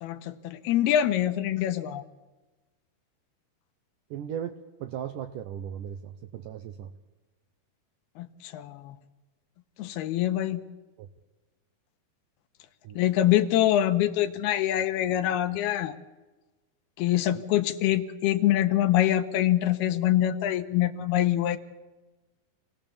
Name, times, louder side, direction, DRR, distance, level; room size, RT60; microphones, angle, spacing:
voice 1, 0.0-2.0 8.2-9.0 9.8-10.6 13.0-15.9 17.0-21.6, left 12 dB, 80° left, 9 dB, 2.8 m, -25 dB
voice 2, 4.1-6.9 11.0-11.1 12.8-13.0, right 9 dB, 80° right, 8 dB, 1.9 m, -37 dB
27.0 x 18.0 x 7.1 m, 1.2 s
omnidirectional pair, 4.7 m